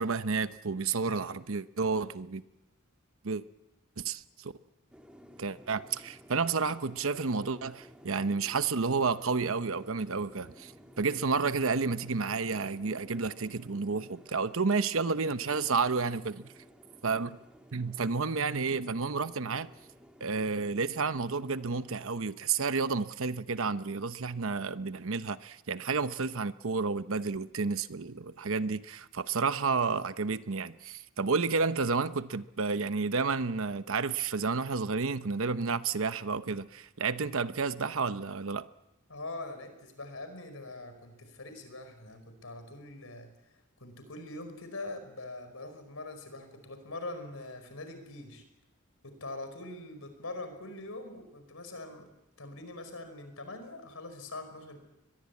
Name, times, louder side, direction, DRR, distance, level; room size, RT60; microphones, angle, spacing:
voice 1, 0.0-2.4 3.2-3.4 4.0-4.5 5.4-10.7 11.0-16.5 17.0-17.4 17.7-19.7 20.2-38.6, right 4 dB, 70° right, 0.9 m, -31 dB
sound 1, 4.9-22.2, equal, 5° right, 1.8 m, -55 dB
voice 2, 39.1-43.3 43.8-48.4 49.0-52.1 52.4-54.8, left 2 dB, 75° left, 5.2 m, -43 dB
23.0 x 22.0 x 8.5 m
head